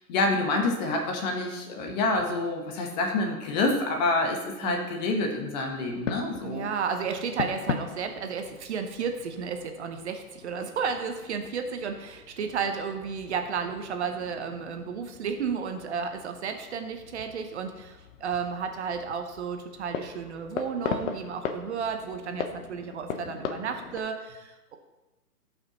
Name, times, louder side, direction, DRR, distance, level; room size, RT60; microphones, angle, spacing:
voice 1, 0.0-6.7, left 2 dB, 25° left, 2 dB, 1.1 m, -27 dB
sound 1, 5.9-24.0, left 6 dB, 50° left, 0.8 m, -39 dB
voice 2, 6.4-24.8, right 6 dB, 45° right, 6 dB, 0.9 m, -33 dB
16.0 x 5.7 x 3.0 m, 1.1 s
hypercardioid pair, 145°, 47 cm